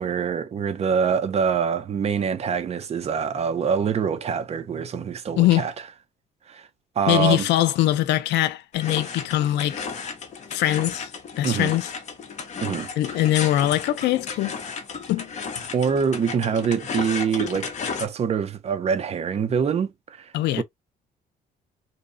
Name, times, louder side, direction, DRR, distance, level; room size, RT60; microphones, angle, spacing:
voice 1, 0.0-5.7 6.5-6.7 7.0-7.5 11.4-11.7 12.6-12.9 15.7-17.7 18.0-20.6, right 6 dB, 35° right, 0.5 m, -25 dB
voice 2, 7.1-9.8 10.5-11.1 11.4-11.9 13.0-14.6 15.1-15.3 20.3-20.6, left 14 dB, 90° left, 0.4 m, -22 dB
sound 1, 8.7-18.1, left 5 dB, 45° left, 0.6 m, -34 dB
2.7 x 2.0 x 2.5 m
cardioid pair, 125°, 18 cm